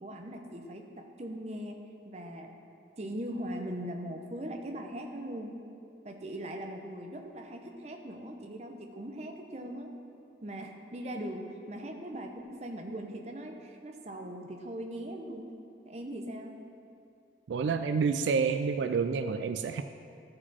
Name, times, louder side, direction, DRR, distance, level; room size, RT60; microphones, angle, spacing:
voice 1, 0.0-2.5 3.0-5.6 6.0-9.9 10.4-15.5 15.8-16.6, right 1 dB, 35° right, 3 dB, 0.7 m, -40 dB
voice 2, 17.5-19.8, right 5 dB, 85° right, 8 dB, 0.3 m, -28 dB
13.5 x 4.9 x 4.2 m, 2.5 s
head